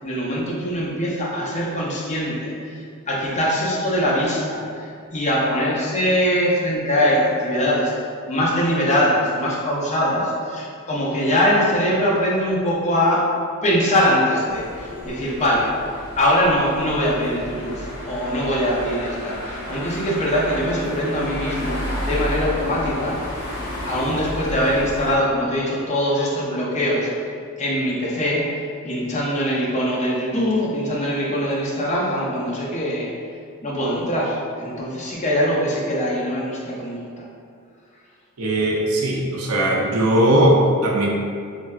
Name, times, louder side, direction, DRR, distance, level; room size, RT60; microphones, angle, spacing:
voice 1, 0.0-7.9 8.2-13.2 13.6-15.7 16.2-23.2 23.8-27.3 27.6-33.1 33.6-37.3, equal, 30° left, -5 dB, 0.5 m, -22 dB
sound 1, 14.5-25.2, equal, 80° left, 0.7 m, -32 dB
voice 2, 38.4-41.1, right 1 dB, 75° right, -2 dB, 0.5 m, -18 dB
3.2 x 2.5 x 2.3 m, 2.2 s
head